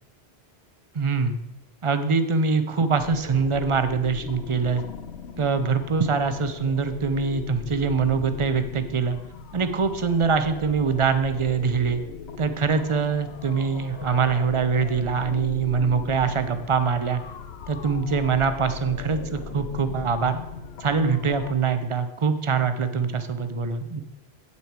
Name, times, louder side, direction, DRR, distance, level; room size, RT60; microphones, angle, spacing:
voice 1, 0.9-1.4 1.8-4.8 5.4-9.2 9.5-12.0 12.4-17.2 17.7-20.4 20.8-24.0, right 5 dB, 35° right, 10 dB, 0.7 m, -24 dB
sound 1, 3.0-21.5, left 6 dB, 80° left, 1.0 m, -39 dB
8.4 x 8.3 x 4.6 m, 0.88 s
omnidirectional pair, 1.1 m